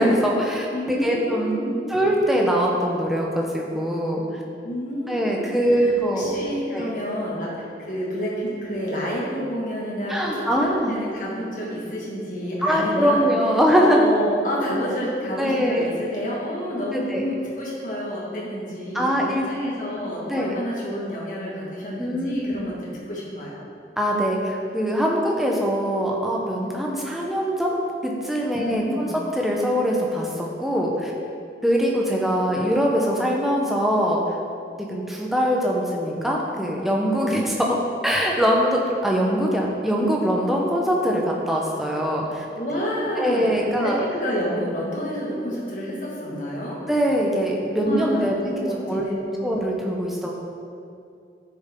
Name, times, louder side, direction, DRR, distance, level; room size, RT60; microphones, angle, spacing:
voice 1, 0.0-1.5 1.9-4.4 5.1-6.3 6.7-6.9 10.1-10.9 12.6-14.1 15.4-15.9 16.9-17.3 18.9-19.4 19.9-20.0 20.3-20.5 22.0-22.6 24.0-27.8 28.0-31.1 31.6-34.4 34.8-37.8 38.0-42.4 43.2-44.0 46.9-48.4 48.9-49.0 49.4-50.3, equal, ahead, -2 dB, 0.9 m, -22 dB
voice 2, 0.7-1.9 4.6-10.5 10.8-13.2 13.8-23.6 28.6-29.1 42.6-46.8 47.8-49.5, equal, 45° left, -5 dB, 2.0 m, -29 dB
9.7 x 6.7 x 3.8 m, 2.5 s
head